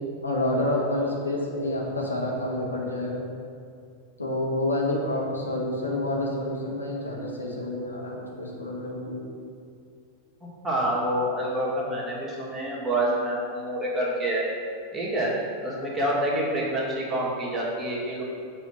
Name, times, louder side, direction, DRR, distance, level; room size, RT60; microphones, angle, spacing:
voice 1, 0.2-3.2 4.2-9.3, left 1 dB, 80° left, -3 dB, 1.3 m, -28 dB
voice 2, 10.4-14.4 14.9-15.3 15.6-18.2, right 1 dB, 10° right, -6 dB, 1.8 m, -27 dB
7.0 x 4.3 x 6.3 m, 2.4 s
figure-of-eight pair, 90°, 0 cm